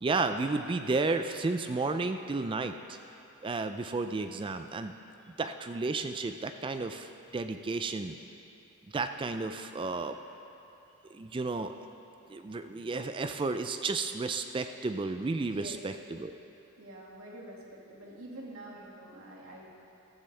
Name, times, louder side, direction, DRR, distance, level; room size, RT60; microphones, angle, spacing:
voice 1, 0.0-3.0 3.4-4.9 5.4-8.2 8.9-10.2 11.1-11.7 12.3-15.9 16.2-16.3, right 3 dB, 20° right, 8 dB, 0.3 m, -32 dB
voice 2, 15.5-15.8 16.8-19.7, right 1 dB, 70° right, -3 dB, 2.0 m, -46 dB
14.5 x 13.5 x 3.3 m, 2.8 s
head